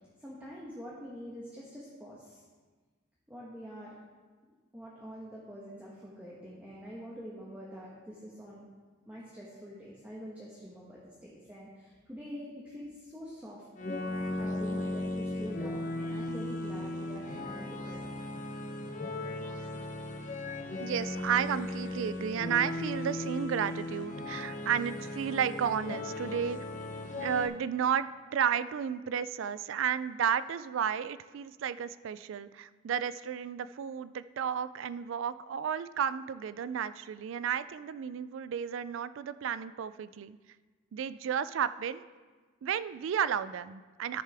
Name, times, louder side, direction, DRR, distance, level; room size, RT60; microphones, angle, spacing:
voice 1, 0.2-2.4 3.3-4.0 4.7-8.7 9.1-13.7 14.4-18.1, equal, 10° right, -6 dB, 1.2 m, -45 dB
sound 1, 13.8-27.5, left 1 dB, 40° left, 0.7 m, -37 dB
voice 2, 20.8-26.6 27.1-40.4 40.9-42.0 42.6-44.2, right 8 dB, 75° right, 15 dB, 0.3 m, -32 dB
13.0 x 6.6 x 3.4 m, 1.4 s
head